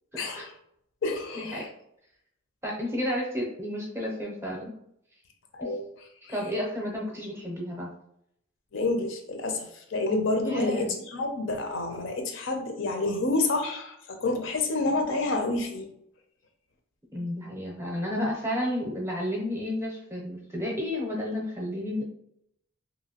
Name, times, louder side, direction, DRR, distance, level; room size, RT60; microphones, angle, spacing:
voice 1, 0.2-0.5 1.0-1.7 5.6-5.8 6.2-6.3 8.7-15.9, left 2 dB, 70° left, 5 dB, 0.5 m, -28 dB
voice 2, 1.3-1.7 2.6-4.7 5.6-5.7 6.3-7.9 10.4-10.9 17.1-22.1, left 1 dB, 10° right, -2 dB, 0.6 m, -31 dB
2.8 x 2.6 x 2.8 m, 0.74 s
head